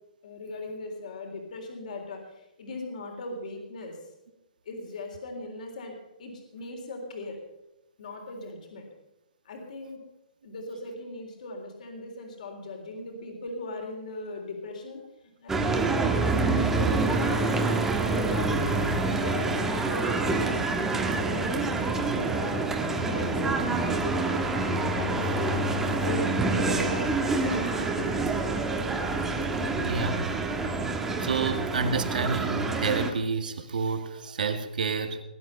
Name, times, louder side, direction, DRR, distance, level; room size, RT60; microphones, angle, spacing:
voice 1, 0.2-4.0 4.7-7.4 8.0-8.9 9.5-10.0 10.4-15.0 15.4-16.1 16.7-17.6 18.0-20.1 20.9-21.6 22.1-22.6 23.0-24.5 25.0-25.2 25.6-27.1 27.4-28.5, left 2 dB, 60° left, 2 dB, 3.7 m, -39 dB
sound 1, 15.5-33.1, right 3 dB, 10° right, 1.3 m, -27 dB
voice 2, 25.1-25.5 29.8-30.3 31.2-35.2, right 4 dB, 70° right, 7 dB, 2.0 m, -29 dB
19.5 x 9.9 x 5.6 m, 0.92 s
hypercardioid pair, 150°, 5 cm